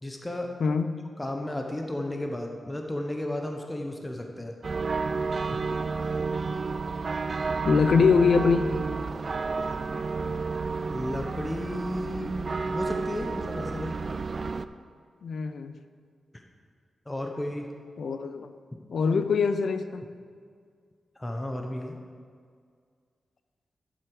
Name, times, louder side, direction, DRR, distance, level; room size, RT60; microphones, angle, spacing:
voice 1, 0.0-0.5 1.2-4.5 5.5-5.6 10.9-14.0 17.1-17.6 21.2-21.9, left 1 dB, 15° left, 2 dB, 0.9 m, -33 dB
voice 2, 0.6-1.0 7.6-8.8 12.1-12.3 15.2-15.7 18.0-18.5 18.9-20.0, left 5 dB, 70° left, 10 dB, 0.6 m, -23 dB
sound 1, 4.6-14.7, right 4 dB, 45° right, 0.3 m, -31 dB
11.5 x 7.8 x 4.9 m, 2.1 s
wide cardioid pair, 95°, 0 cm